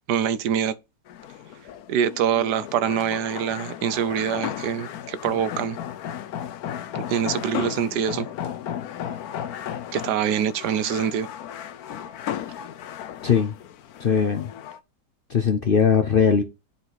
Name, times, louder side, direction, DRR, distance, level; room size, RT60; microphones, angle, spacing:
voice 1, 0.1-0.7 1.9-5.8 6.9-8.3 9.9-11.3, right 9 dB, 85° right, 1.2 m, -24 dB
sound 1, 1.1-14.8, left 10 dB, 70° left, 1.1 m, -35 dB
voice 2, 13.2-13.5 14.0-14.5 15.3-16.4, left 6 dB, 50° left, 0.6 m, -20 dB
9.8 x 4.1 x 4.0 m
omnidirectional pair, 1.7 m